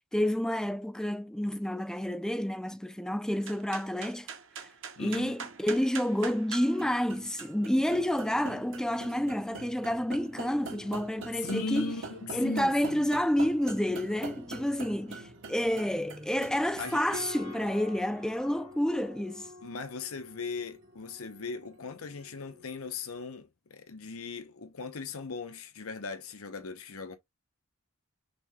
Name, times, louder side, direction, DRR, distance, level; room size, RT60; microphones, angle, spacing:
voice 1, 0.0-4.3 4.6-4.7 5.0-11.9 12.3-19.5, equal, 5° left, 0.4 m, -29 dB
sound 1, 3.4-22.9, right 3 dB, 60° right, 1.0 m, -44 dB
voice 2, 5.0-5.4 7.9-8.0 11.3-13.1 16.8-17.0 19.6-27.2, left 4 dB, 75° left, 0.8 m, -38 dB
6.0 x 3.3 x 2.3 m
head